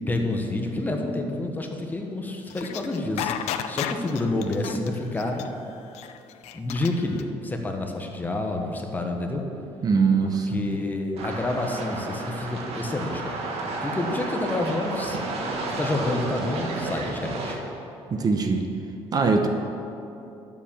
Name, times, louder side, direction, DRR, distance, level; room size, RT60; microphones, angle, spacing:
voice 1, 0.0-5.5 6.5-9.4 10.2-13.4 13.8-15.2 15.7-17.6, left 2 dB, 15° left, 2 dB, 1.2 m, -28 dB
sound 1, 2.5-7.2, left 11 dB, 85° left, 0.6 m, -32 dB
voice 2, 9.8-10.6 18.1-18.7 19.1-19.5, right 4 dB, 35° right, 5 dB, 0.9 m, -22 dB
sound 2, 11.2-17.6, right 2 dB, 65° right, 1.8 m, -32 dB
11.5 x 7.3 x 7.3 m, 2.9 s
cardioid pair, 140°, 11 cm